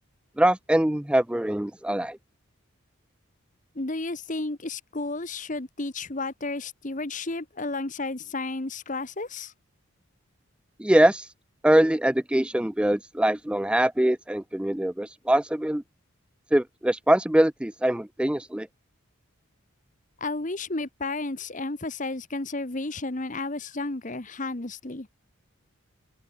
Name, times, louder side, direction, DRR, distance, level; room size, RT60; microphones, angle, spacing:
voice 1, 0.4-2.2 10.8-11.3 11.6-15.8 16.5-18.7, right 1 dB, 5° right, 0.3 m, -23 dB
voice 2, 3.7-9.5 20.2-25.1, left 2 dB, 35° left, 1.2 m, -32 dB
open air
head